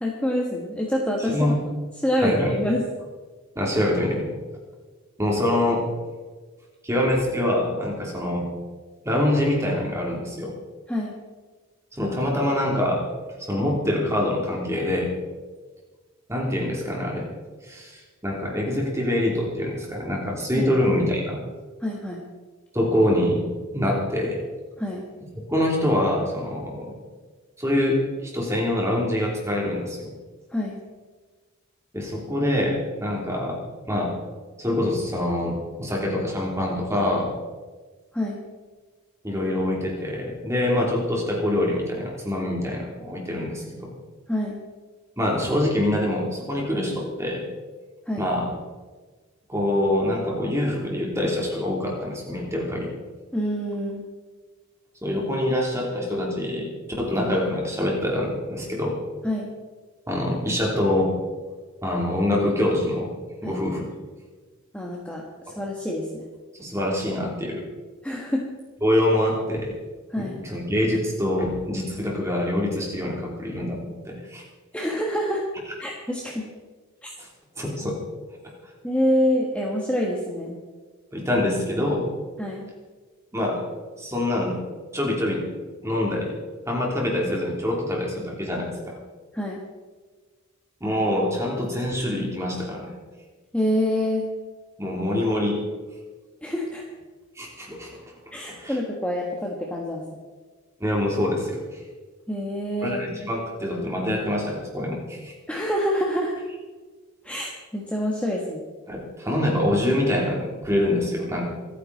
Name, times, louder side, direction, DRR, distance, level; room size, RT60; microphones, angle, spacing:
voice 1, 0.0-1.5 2.0-2.8 10.9-11.1 20.5-20.7 21.8-22.2 24.8-25.0 30.5-30.8 38.1-38.4 44.3-44.6 48.1-48.3 53.3-54.0 59.2-59.5 63.4-63.6 64.7-66.3 68.0-68.5 70.1-70.4 74.7-75.4 75.8-76.5 77.0-77.1 78.8-80.6 82.4-82.7 89.3-89.6 93.5-94.3 96.4-96.8 98.3-100.0 102.3-103.0 105.5-106.4 107.2-108.6, equal, 5° left, -2 dB, 1.4 m, -26 dB
voice 2, 2.2-2.6 3.5-4.3 5.2-5.9 6.8-8.5 9.0-10.5 11.9-13.1 13.4-15.1 16.3-17.3 17.6-21.4 22.7-23.4 23.7-24.4 25.3-26.9 27.6-30.1 31.9-33.6 33.9-34.2 34.6-37.3 39.2-43.9 45.2-47.4 48.2-48.5 49.5-52.9 55.0-56.7 57.0-59.0 60.1-61.2 61.8-63.1 63.4-63.9 66.5-67.6 68.8-69.7 70.2-74.4 77.2-77.3 77.6-78.0 78.4-78.5 81.1-82.1 83.3-83.7 84.0-84.6 84.9-85.5 85.8-86.3 86.7-89.0 90.8-92.9 94.8-95.6 97.4-98.0 98.5-98.8 100.8-101.8 102.8-105.3 108.9-111.5, left 1 dB, 15° right, -2 dB, 3.2 m, -25 dB
26.0 x 9.5 x 4.2 m, 1.4 s
head